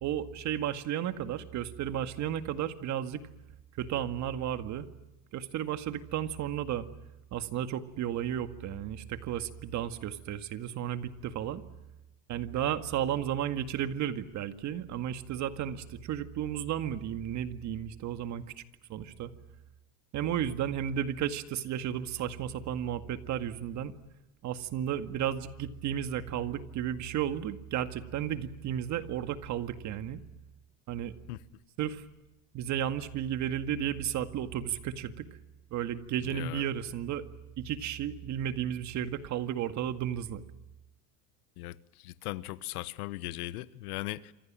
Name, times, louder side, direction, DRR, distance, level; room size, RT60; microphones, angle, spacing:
voice 1, 0.0-3.2 3.8-4.8 5.3-6.9 7.3-11.6 12.3-18.4 18.9-19.3 20.1-23.9 24.4-30.2 30.9-31.1 31.8-32.0 32.5-35.3 35.7-37.2 37.6-40.4, right 10 dB, 40° right, 1.9 m, -33 dB
voice 2, 36.2-36.7 41.6-44.3, left 17 dB, 80° left, 1.3 m, -39 dB
28.0 x 26.0 x 7.5 m
supercardioid pair, 140°, 44 cm